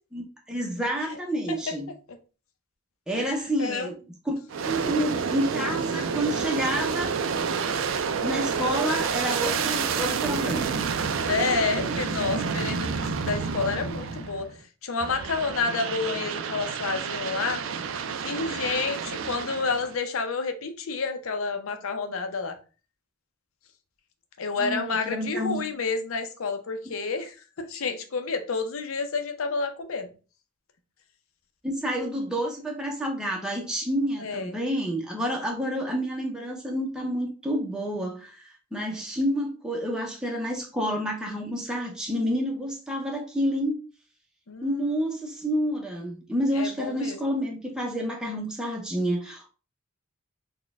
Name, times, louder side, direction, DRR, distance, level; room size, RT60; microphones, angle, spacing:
voice 1, 0.1-1.9 3.1-3.9 4.3-4.4 4.6-7.2 8.2-10.7 24.6-25.6 31.6-43.8 44.6-49.5, equal, 5° right, 0.6 m, -29 dB
voice 2, 3.6-3.9 11.3-14.5 14.8-17.6 18.2-22.6 24.4-30.1 34.2-34.6 44.5-44.7 46.5-47.2, left 4 dB, 80° left, 0.6 m, -29 dB
Aircraft, 4.5-14.5 15.0-20.0, right 5 dB, 65° right, 0.4 m, -29 dB
4.1 x 2.2 x 3.5 m
head